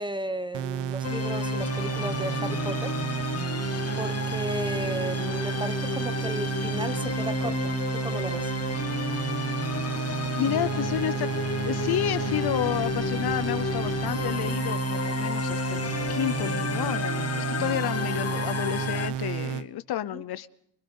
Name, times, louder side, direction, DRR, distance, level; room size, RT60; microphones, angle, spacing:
voice 1, 0.0-2.9 4.0-8.5 20.0-20.2, right 1 dB, 10° right, 13 dB, 1.0 m, -35 dB
sound 1, 0.5-19.7, right 9 dB, 85° right, 0.9 m, -31 dB
sound 2, 1.0-19.1, left 6 dB, 35° left, 1.0 m, -32 dB
voice 2, 10.4-11.3 11.6-15.8 16.1-20.5, left 12 dB, 65° left, 15 dB, 0.8 m, -30 dB
24.5 x 21.0 x 5.5 m, 0.68 s
cardioid pair, 100°, 42 cm